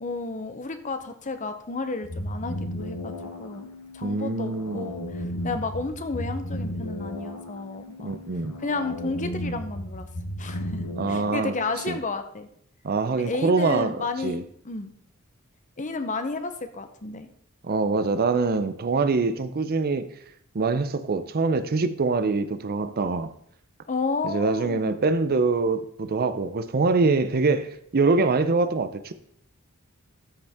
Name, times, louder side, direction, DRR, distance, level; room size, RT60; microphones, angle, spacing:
voice 1, 0.0-3.1 3.4-8.2 8.6-10.1 10.4-12.5 13.2-14.9 15.8-17.3 23.9-25.0, left 3 dB, 35° left, 0.8 m, -32 dB
sound 1, 2.0-12.0, left 1 dB, 75° left, 1.4 m, -35 dB
voice 2, 4.0-4.9 8.0-8.6 11.0-11.5 11.9-12.0 12.8-14.4 17.6-20.1 20.5-23.3 24.2-29.1, right 3 dB, 45° right, 0.5 m, -24 dB
13.5 x 5.3 x 3.6 m
head